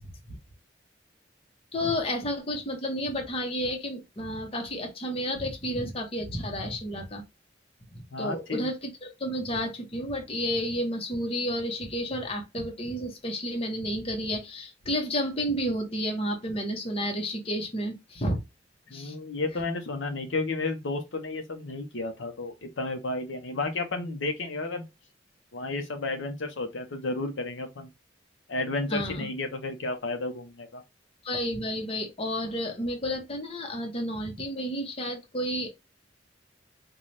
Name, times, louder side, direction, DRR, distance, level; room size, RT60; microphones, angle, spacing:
voice 1, 1.7-7.2 7.9-18.4 18.9-19.1 28.9-29.3 31.2-35.7, equal, 30° left, 0.8 m, -31 dB
voice 2, 8.1-8.7 18.9-24.9 25.5-27.9 28.5-30.8, left 2 dB, 80° left, 0.7 m, -32 dB
4.0 x 2.3 x 3.1 m
head